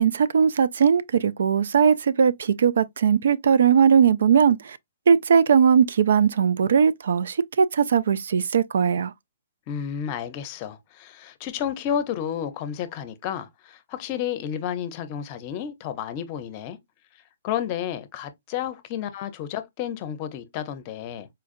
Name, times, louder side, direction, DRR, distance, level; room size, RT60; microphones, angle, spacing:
voice 1, 0.0-4.8 5.1-9.1, right 7 dB, 65° right, 0.3 m, -19 dB
voice 2, 9.7-16.8 17.4-21.3, left 9 dB, 40° left, 0.7 m, -31 dB
4.4 x 2.4 x 2.5 m
hypercardioid pair, 130°, 0 cm